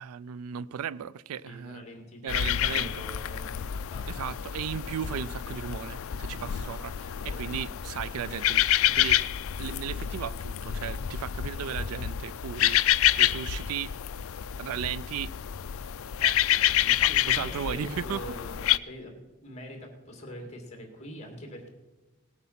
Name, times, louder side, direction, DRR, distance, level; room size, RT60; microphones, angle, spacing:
voice 1, 0.0-1.8 2.2-3.0 4.1-9.2 9.6-12.8 13.2-13.9 14.6-15.3 16.2-18.2, right 8 dB, 75° right, 0.3 m, -36 dB
voice 2, 1.5-3.6 3.9-4.4 7.3-7.4 16.8-21.7, equal, 30° left, 2.3 m, -44 dB
sound 1, 2.3-18.8, left 11 dB, 65° left, 0.4 m, -28 dB
18.5 x 8.1 x 5.7 m
head